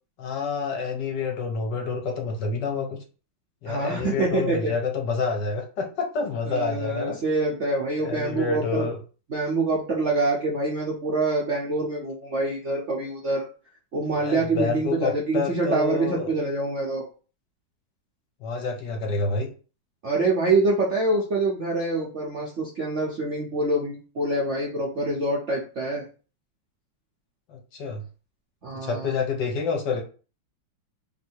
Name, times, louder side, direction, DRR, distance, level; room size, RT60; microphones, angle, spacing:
voice 1, 0.2-3.0 3.6-7.2 8.0-9.0 14.2-16.3 18.4-19.5 27.5-28.0 28.7-30.0, left 4 dB, 65° left, 2 dB, 1.3 m, -28 dB
voice 2, 3.7-4.7 6.4-8.9 9.3-13.5 13.9-17.0 20.0-26.0 28.6-29.2, right 2 dB, 55° right, -3 dB, 0.8 m, -25 dB
3.2 x 2.6 x 4.4 m, 0.37 s
omnidirectional pair, 2.2 m